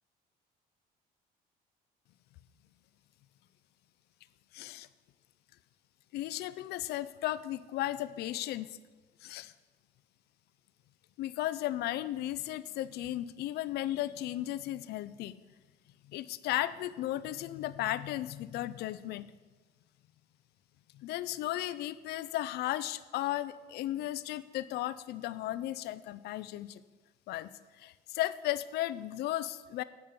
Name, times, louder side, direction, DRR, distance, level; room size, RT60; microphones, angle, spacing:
voice 1, 4.5-4.9 6.1-8.8 9.2-9.5 11.2-15.4 16.1-19.2 20.9-26.8 27.3-27.5 27.8-29.8, left 14 dB, 75° left, 15 dB, 0.5 m, -35 dB
8.9 x 5.3 x 6.9 m, 1.3 s
cardioid pair, 110°, 17 cm